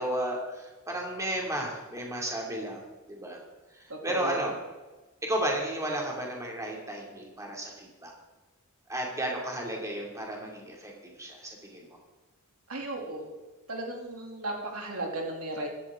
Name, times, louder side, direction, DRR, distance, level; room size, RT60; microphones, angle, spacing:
voice 1, 0.0-2.8 3.1-3.4 3.7-4.6 5.2-8.1 8.9-12.0, right 1 dB, 15° right, -1 dB, 2.6 m, -33 dB
voice 2, 4.1-4.4 12.7-13.3 13.7-15.7, right 2 dB, 75° right, 0 dB, 2.8 m, -35 dB
15.5 x 12.5 x 3.8 m, 1.2 s
head